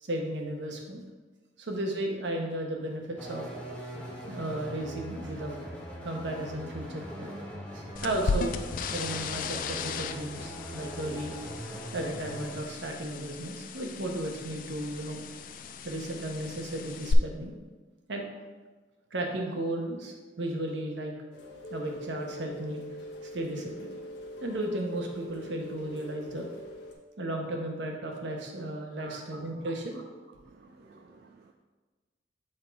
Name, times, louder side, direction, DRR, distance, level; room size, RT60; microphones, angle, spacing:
voice 1, 0.0-1.0 1.6-3.5 4.3-5.6 6.0-7.3 7.7-8.5 8.9-11.3 11.9-15.2 15.8-17.5 18.1-18.3 19.1-21.1 21.7-22.8 23.2-23.9 24.4-26.5 27.2-30.0 30.9-31.0, right 1 dB, 85° right, 2 dB, 1.0 m, -34 dB
sound 1, 3.2-12.6, equal, 5° left, 0.9 m, -41 dB
sound 2, 8.0-17.1, left 5 dB, 50° left, 0.3 m, -36 dB
Rain, 21.3-26.9, equal, 90° left, 1.0 m, -43 dB
voice 2, 30.4-31.5, right 5 dB, 60° right, 4 dB, 0.3 m, -51 dB
6.5 x 3.8 x 4.5 m, 1.3 s
head